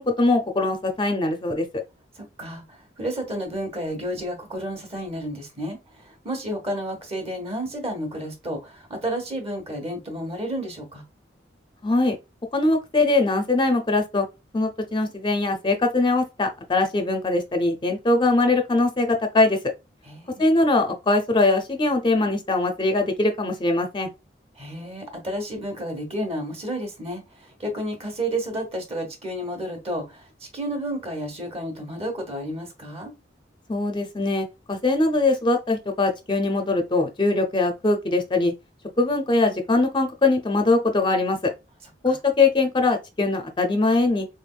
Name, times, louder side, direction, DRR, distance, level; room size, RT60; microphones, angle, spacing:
voice 1, 0.0-1.7 11.8-12.2 12.5-14.3 14.5-19.6 20.4-24.1 33.7-38.5 39.0-41.4 42.0-44.3, left 2 dB, 25° left, 0.5 m, -22 dB
voice 2, 2.1-11.0 20.0-20.4 24.6-33.1 42.0-42.2, right 1 dB, 35° right, 1.3 m, -31 dB
3.8 x 3.4 x 2.2 m
head